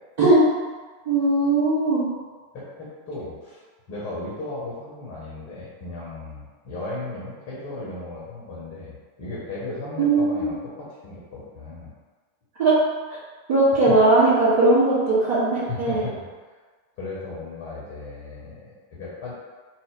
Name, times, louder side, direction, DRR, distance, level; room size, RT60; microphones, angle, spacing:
voice 1, 1.0-2.1 10.0-10.6 12.6-12.8 13.5-16.1, right 2 dB, 50° right, -11 dB, 0.8 m, -19 dB
voice 2, 2.5-3.6 3.9-11.9 13.9-14.0 15.6-16.3 17.0-19.3, left 2 dB, 50° left, -6 dB, 0.8 m, -36 dB
2.4 x 2.0 x 3.7 m, 1.4 s
figure-of-eight pair, 90°, 0 cm